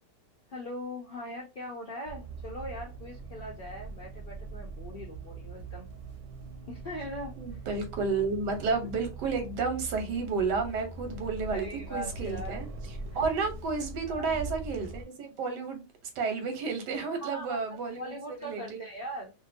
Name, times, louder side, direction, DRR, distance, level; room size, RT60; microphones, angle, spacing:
voice 1, 0.5-5.9 6.7-7.6 11.5-12.7 14.1-14.4 17.1-17.6 17.9-19.3, equal, 80° left, 0.4 m, -41 dB
sound 1, 2.1-15.0, right 3 dB, 60° right, 0.9 m, -42 dB
voice 2, 7.4-12.7 13.1-15.9 16.1-18.1 18.4-18.8, right 4 dB, 90° right, 1.4 m, -31 dB
2.9 x 2.6 x 2.5 m
omnidirectional pair, 1.8 m